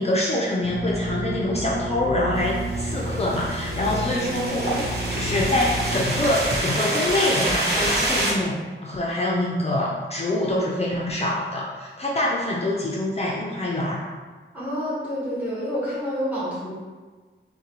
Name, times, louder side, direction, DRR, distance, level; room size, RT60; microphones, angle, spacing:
voice 1, 0.0-8.6 8.8-14.0, left 1 dB, 30° left, -4 dB, 0.5 m, -25 dB
sound 1, 0.6-6.3, equal, 80° right, 1.1 m, -30 dB
sound 2, 2.5-8.3, right 1 dB, 50° right, 0.8 m, -27 dB
voice 2, 14.5-16.7, equal, 10° right, -9 dB, 0.9 m, -28 dB
5.6 x 2.2 x 2.9 m, 1.4 s
wide cardioid pair, 155°, 21 cm